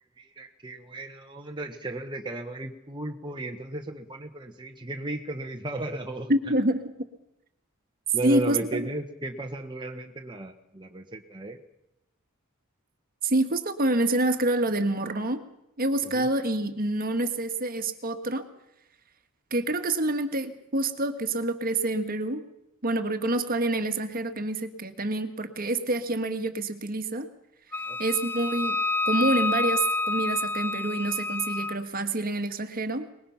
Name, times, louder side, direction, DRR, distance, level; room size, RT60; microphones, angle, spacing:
voice 1, 0.2-6.3 8.1-11.6 16.1-16.3 27.8-28.0, right 2 dB, 20° right, 3 dB, 1.2 m, -35 dB
voice 2, 6.3-6.8 8.2-8.9 13.2-15.4 15.8-18.4 19.5-22.4 22.8-27.3 28.0-28.8 29.0-33.1, right 2 dB, 45° right, 9 dB, 1.6 m, -27 dB
Wind instrument woodwind instrument, 27.7-31.8, left 2 dB, 10° left, 0.8 m, -28 dB
23.5 x 21.0 x 5.8 m, 0.87 s
head